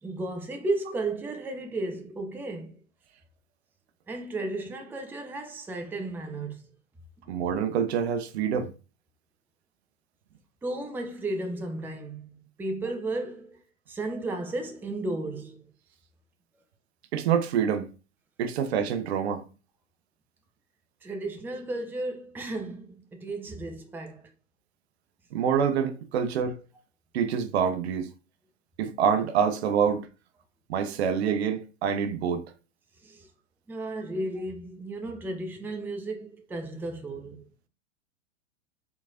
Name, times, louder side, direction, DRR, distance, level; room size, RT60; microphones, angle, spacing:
voice 1, 0.0-2.8 4.1-6.7 10.6-13.6 13.9-15.7 21.0-24.3 33.0-33.3 33.7-37.5, right 2 dB, 5° right, 0.5 m, -34 dB
voice 2, 7.3-8.7 17.1-17.9 18.4-19.4 25.3-26.6 27.1-28.1 28.8-30.1 30.7-32.5, right 7 dB, 60° right, 0.7 m, -26 dB
4.5 x 3.9 x 2.5 m
figure-of-eight pair, 100°, 37 cm